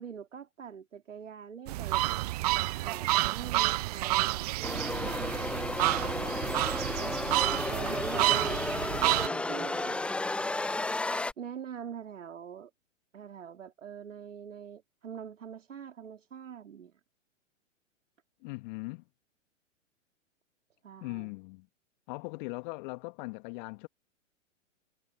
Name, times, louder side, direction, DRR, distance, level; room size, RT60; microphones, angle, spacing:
voice 1, 0.0-2.0 2.5-7.4 7.7-10.0 11.4-12.7 13.1-16.9 20.8-21.3, right 7 dB, 70° right, 3.5 m, -44 dB
sound 1, 1.7-9.3, right 18 dB, 30° right, 0.5 m, -29 dB
sound 2, 2.9-3.9 4.3-5.6 6.1-6.8 7.2-8.6, right 14 dB, 50° right, 6.4 m, -56 dB
sound 3, 4.6-11.3, left 2 dB, 5° left, 0.7 m, -33 dB
voice 2, 18.4-19.0 21.0-21.7 22.1-23.9, left 27 dB, 40° left, 1.9 m, -39 dB
figure-of-eight pair, 115°, 38 cm